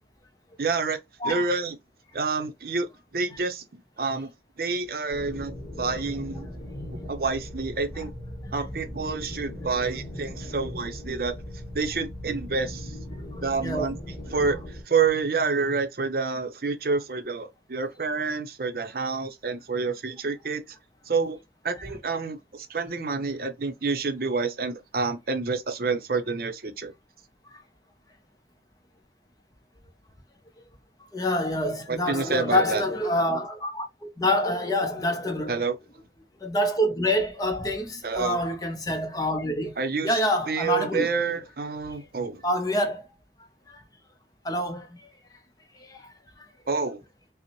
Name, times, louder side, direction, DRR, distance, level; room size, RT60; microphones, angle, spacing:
voice 1, 0.6-1.0 1.2-1.8 2.1-2.9 3.1-4.3 4.6-6.5 6.9-8.1 8.5-11.3 11.7-12.9 13.4-14.0 14.3-20.6 21.1-21.4 21.6-26.9 31.9-32.8 35.5-35.8 38.0-38.4 39.8-40.2 40.5-42.4 46.7-47.0, right 4 dB, 55° right, 0.6 m, -28 dB
sound 1, 5.1-14.8, left 1 dB, ahead, 2.3 m, -38 dB
voice 2, 31.1-35.5 36.4-39.8 40.0-41.1 42.4-43.1 43.7-43.8 44.4-45.0 45.8-46.1, left 1 dB, 20° left, 0.6 m, -26 dB
5.4 x 2.1 x 3.0 m
head